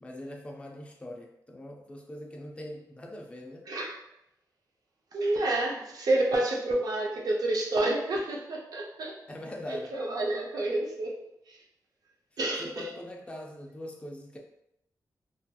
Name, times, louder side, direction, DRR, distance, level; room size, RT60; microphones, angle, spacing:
voice 1, 0.0-3.7 9.3-9.9 12.6-14.4, left 1 dB, 15° left, 0 dB, 0.4 m, -42 dB
voice 2, 3.7-4.0 5.1-9.2 9.7-11.2 11.5-11.6 12.4-12.9, right 2 dB, 65° right, -2 dB, 0.5 m, -29 dB
2.7 x 2.5 x 2.2 m, 0.80 s
wide cardioid pair, 160°, 7 cm